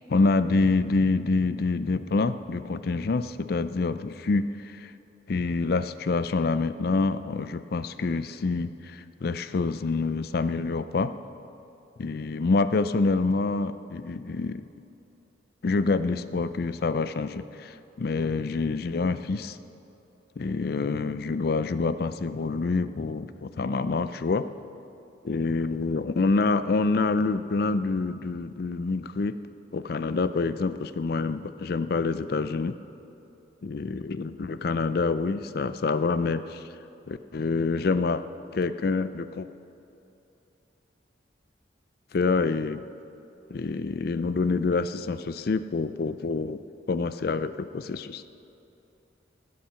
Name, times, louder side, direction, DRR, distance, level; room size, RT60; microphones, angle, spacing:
voice 1, 0.0-4.9 5.3-11.1 12.0-14.7 15.6-19.6 20.4-24.5 25.3-29.4 29.7-32.8 33.6-36.6 37.1-38.2 38.5-39.5 42.1-42.9 43.5-46.6 46.9-48.2, left 3 dB, 50° left, 13 dB, 0.4 m, -27 dB
18.5 x 8.5 x 5.7 m, 2.8 s
head